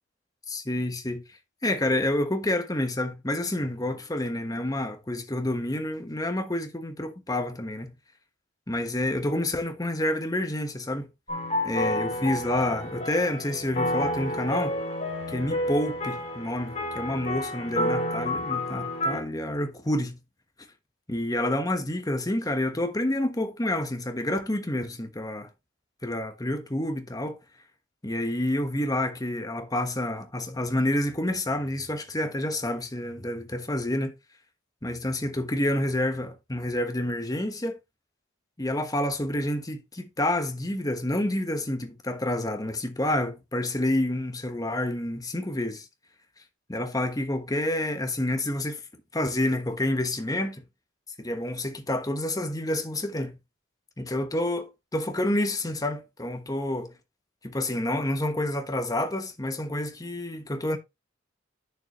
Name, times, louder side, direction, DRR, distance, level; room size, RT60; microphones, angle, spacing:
voice 1, 0.5-1.2 1.6-7.9 8.7-11.1 11.6-14.7 15.3-20.2 21.1-25.5 26.0-27.4 28.0-34.1 34.8-37.8 38.6-45.8 46.7-48.8 49.1-50.6 51.2-53.4 54.0-56.9 57.4-60.8, left 1 dB, 20° left, 1.2 m, -28 dB
sound 1, 11.3-19.2, left 1 dB, 35° left, 3.7 m, -30 dB
9.0 x 6.9 x 3.1 m
head